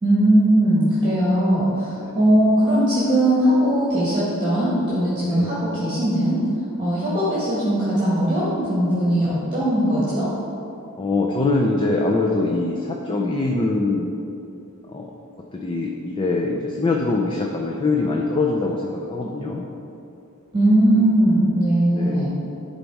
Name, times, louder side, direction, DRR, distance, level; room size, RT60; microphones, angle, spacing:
voice 1, 0.0-6.4 6.8-10.3 20.5-22.4, right 1 dB, 25° right, -9 dB, 1.5 m, -19 dB
voice 2, 11.0-14.3 14.9-15.1 15.5-19.6 20.9-21.1 21.9-22.2, left 3 dB, 25° left, 0 dB, 0.5 m, -23 dB
10.5 x 4.1 x 4.7 m, 2.8 s
head